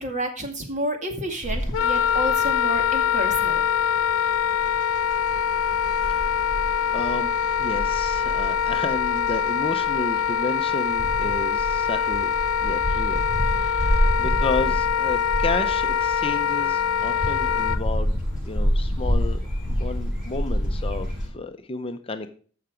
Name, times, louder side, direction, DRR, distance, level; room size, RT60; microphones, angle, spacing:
voice 1, 0.0-3.6, right 1 dB, 35° right, 4 dB, 2.0 m, -30 dB
sound 1, 1.4-21.3, equal, 5° right, 5.8 m, -29 dB
Wind instrument woodwind instrument, 1.7-17.8, left 8 dB, 75° left, 0.4 m, -24 dB
voice 2, 6.9-12.3 12.6-13.2 13.6-18.2 18.5-19.4 19.8-22.3, left 3 dB, 25° left, 7 dB, 0.7 m, -32 dB
14.5 x 5.9 x 5.1 m, 0.43 s
head